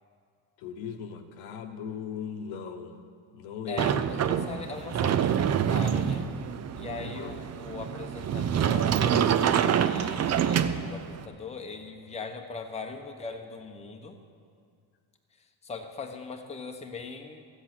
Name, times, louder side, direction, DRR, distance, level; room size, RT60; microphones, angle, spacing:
voice 1, 0.6-2.9 3.3-3.9 7.1-7.3, left 7 dB, 70° left, 6 dB, 1.1 m, -38 dB
voice 2, 3.7-6.3 6.7-14.2 15.3-17.5, left 4 dB, 15° left, 3 dB, 0.9 m, -40 dB
Sliding door, 3.8-11.2, right 8 dB, 35° right, 0.5 m, -26 dB
13.5 x 8.2 x 6.0 m, 2.2 s
cardioid pair, 110°, 49 cm